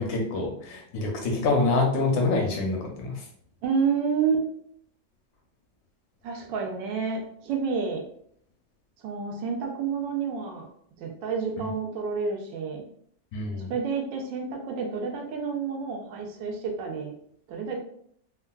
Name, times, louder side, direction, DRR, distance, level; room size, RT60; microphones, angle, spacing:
voice 1, 0.0-3.2 11.6-11.7 13.3-13.7, left 3 dB, 70° left, 1 dB, 1.0 m, -26 dB
voice 2, 3.6-4.4 6.2-8.0 9.0-10.7 11.0-12.8 13.7-17.1 17.5-17.8, right 5 dB, 85° right, 2 dB, 1.3 m, -29 dB
3.6 x 2.3 x 2.2 m, 0.65 s
omnidirectional pair, 2.0 m